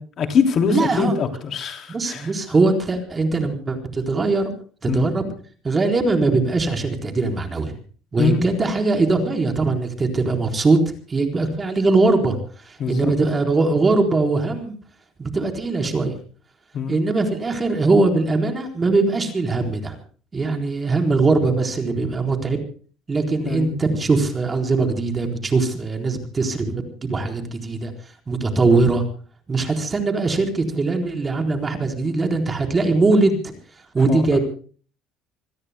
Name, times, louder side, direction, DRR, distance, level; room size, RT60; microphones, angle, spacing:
voice 1, 0.0-2.3 4.9-5.1 8.2-8.7 12.8-13.1 16.7-16.9 23.5-23.7 34.1-34.2, left 5 dB, 40° left, 5 dB, 3.1 m, -23 dB
voice 2, 0.7-1.1 1.9-4.5 4.8-5.3 5.6-7.7 8.1-10.8 11.1-12.4 12.6-14.7 15.2-16.1 16.9-20.0 20.3-22.6 23.1-27.9 28.3-29.0 29.5-33.5 33.9-34.4, right 3 dB, 20° right, 4 dB, 4.1 m, -21 dB
27.5 x 20.5 x 2.2 m, 0.42 s
cardioid pair, 145°, 0 cm